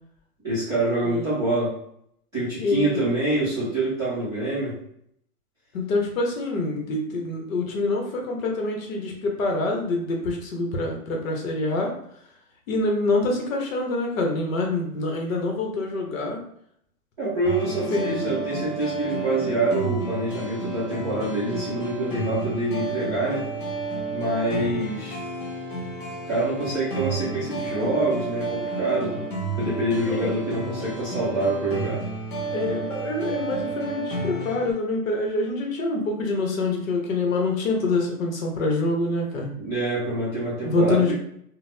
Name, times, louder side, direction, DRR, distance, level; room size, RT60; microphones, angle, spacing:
voice 1, 0.4-1.8 2.3-4.8 17.2-23.4 24.1-25.2 26.3-29.2 29.6-32.0 39.6-41.1, right 2 dB, 5° right, -14 dB, 0.6 m, -26 dB
voice 2, 1.0-1.5 2.6-3.1 5.7-11.9 12.7-16.4 17.9-18.2 29.9-30.3 32.5-39.5 40.6-41.1, left 2 dB, 55° left, 1 dB, 0.9 m, -26 dB
sound 1, 17.4-34.7, right 3 dB, 35° left, 0.4 m, -31 dB
3.7 x 2.0 x 2.6 m, 0.69 s
hypercardioid pair, 160°, 47 cm